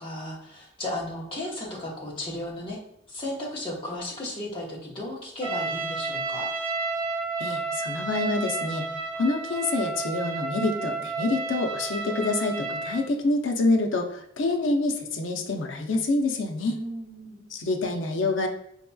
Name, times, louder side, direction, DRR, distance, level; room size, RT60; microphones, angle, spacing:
voice 1, 0.0-2.8 3.1-6.5 16.7-17.4, left 1 dB, 25° left, -3 dB, 0.9 m, -35 dB
Trumpet, 5.4-13.1, right 3 dB, 25° right, 0.8 m, -31 dB
voice 2, 7.4-8.9 9.2-16.7 17.5-18.5, left 2 dB, 90° left, 3 dB, 0.6 m, -26 dB
4.4 x 2.8 x 2.2 m, 0.79 s
head